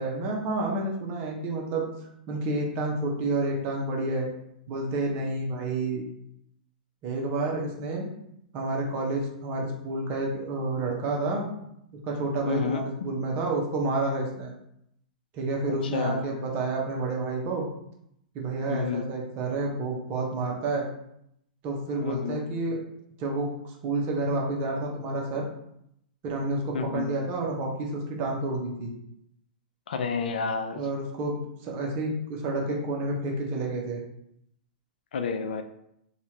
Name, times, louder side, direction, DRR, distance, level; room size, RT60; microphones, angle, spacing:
voice 1, 0.0-1.9 2.3-4.3 4.7-6.0 7.0-8.1 8.5-11.5 12.0-14.5 15.3-17.6 18.3-20.9 21.6-22.8 23.2-25.5 26.2-28.9 30.7-34.0, right 2 dB, 40° right, -1 dB, 0.9 m, -29 dB
voice 2, 12.5-12.8 15.9-16.3 18.7-19.0 22.0-22.4 26.7-27.1 29.9-30.8 35.1-35.6, left 5 dB, 75° left, 8 dB, 0.4 m, -30 dB
3.0 x 2.4 x 2.9 m, 0.75 s
hypercardioid pair, 120°, 5 cm